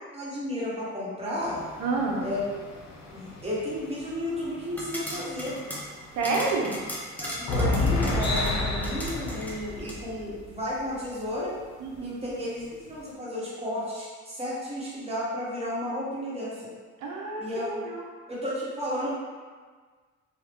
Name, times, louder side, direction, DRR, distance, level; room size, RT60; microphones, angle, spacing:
voice 1, 0.1-1.6 2.2-2.6 3.1-5.5 7.2-11.5 12.0-16.7 17.4-17.9 18.3-19.1, left 1 dB, 20° right, -8 dB, 1.2 m, -33 dB
sound 1, 1.4-5.2 5.6-5.7 6.0-6.5 7.2-10.6 11.4-11.5 11.9-12.0, left 2 dB, 65° left, 0.7 m, -30 dB
voice 2, 1.8-2.3 6.2-6.8 11.8-12.3 17.0-18.0, right 3 dB, 90° right, 0 dB, 0.6 m, -29 dB
sound 2, 4.7-10.0, equal, 5° left, 0.6 m, -38 dB
2.7 x 2.4 x 3.5 m, 1.5 s
cardioid pair, 90°, 30 cm